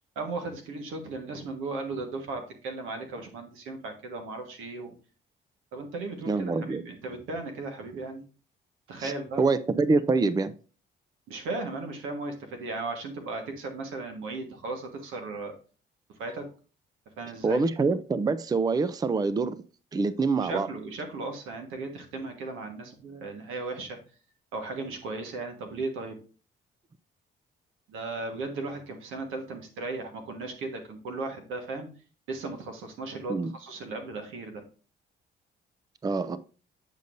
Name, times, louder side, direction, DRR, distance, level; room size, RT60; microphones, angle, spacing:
voice 1, 0.1-4.9 5.7-8.2 8.9-9.5 11.3-15.5 16.1-16.5 17.2-17.6 20.4-24.0 24.5-26.2 27.9-31.9 32.3-34.6, right 3 dB, 90° right, 1.5 m, -36 dB
voice 2, 6.3-6.8 9.0-9.1 9.4-10.5 17.4-19.6 19.9-20.7 33.3-33.5 36.0-36.4, right 4 dB, 20° right, 0.4 m, -25 dB
8.2 x 5.2 x 2.6 m
cardioid pair, 90°, 20 cm